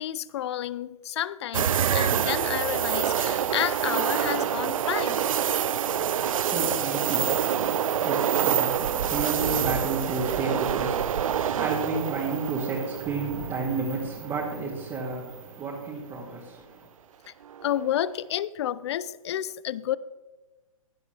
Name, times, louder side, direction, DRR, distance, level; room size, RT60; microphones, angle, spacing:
voice 1, 0.0-5.2 17.6-20.0, left 12 dB, 50° left, 0.5 m, -30 dB
sound 1, 1.5-14.6 15.0-15.1 17.5-17.9, right 9 dB, 70° right, 0.5 m, -26 dB
voice 2, 5.9-16.9, right 3 dB, 20° right, 2.3 m, -32 dB
16.0 x 11.0 x 3.3 m
hypercardioid pair, 125°, 18 cm